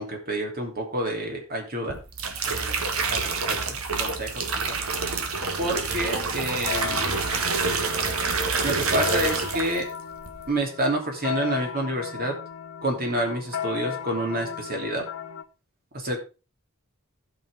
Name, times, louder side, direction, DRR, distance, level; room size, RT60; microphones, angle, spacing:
voice 1, 0.0-2.0 2.5-4.5 5.6-7.1 8.6-9.9 10.5-12.4 12.8-15.0 15.9-16.2, right 1 dB, 45° right, 2 dB, 2.9 m, -28 dB
sound 1, 1.9-9.9 10.2-10.6, right 4 dB, 80° right, 1.6 m, -27 dB
sound 2, 6.3-15.4, left 9 dB, 85° left, 0.9 m, -36 dB
15.5 x 6.0 x 3.5 m, 0.31 s
head